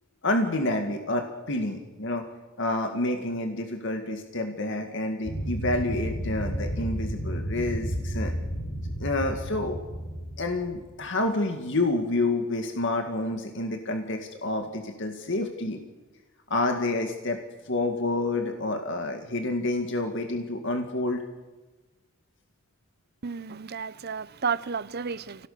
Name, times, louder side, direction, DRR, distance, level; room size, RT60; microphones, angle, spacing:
voice 1, 0.2-2.3 2.6-8.3 9.0-9.8 10.4-15.8 16.5-17.4 17.6-21.2, left 2 dB, 60° left, 2.1 m, -28 dB
sound 1, 5.3-11.1, equal, 75° left, 7.9 m, -32 dB
voice 2, 23.2-25.5, right 5 dB, 50° right, 0.6 m, -32 dB
29.5 x 18.0 x 6.8 m
head